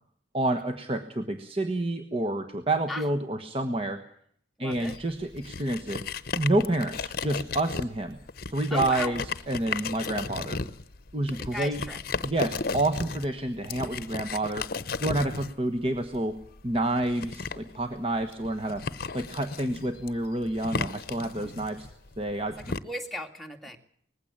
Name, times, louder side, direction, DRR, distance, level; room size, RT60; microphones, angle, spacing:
voice 1, 0.3-4.0 4.6-6.0 6.3-8.2 8.5-9.2 9.5-10.6 11.1-11.8 12.2-14.7 15.0-16.4 16.6-18.8 19.1-21.9 22.2-22.8, right 1 dB, 30° right, 7 dB, 1.3 m, -29 dB
voice 2, 4.6-4.9 8.7-9.2 11.3-12.0 21.4-21.5 22.7-23.8, left 1 dB, ahead, 2 dB, 2.2 m, -36 dB
sound 1, 4.7-22.8, left 4 dB, 50° left, 0.9 m, -35 dB
20.0 x 15.5 x 8.7 m, 0.63 s
head